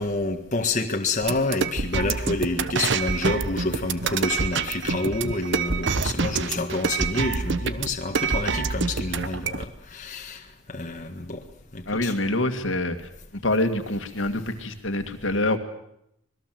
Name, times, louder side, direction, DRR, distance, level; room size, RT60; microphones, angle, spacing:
voice 1, 0.0-11.4 11.7-12.1, left 2 dB, 40° left, 3 dB, 1.7 m, -28 dB
sound 1, 1.2-9.6, right 4 dB, 60° right, 1.1 m, -26 dB
voice 2, 11.9-13.0 13.4-15.6, left 2 dB, 65° left, 7 dB, 2.2 m, -25 dB
26.0 x 20.5 x 7.8 m, 0.77 s
head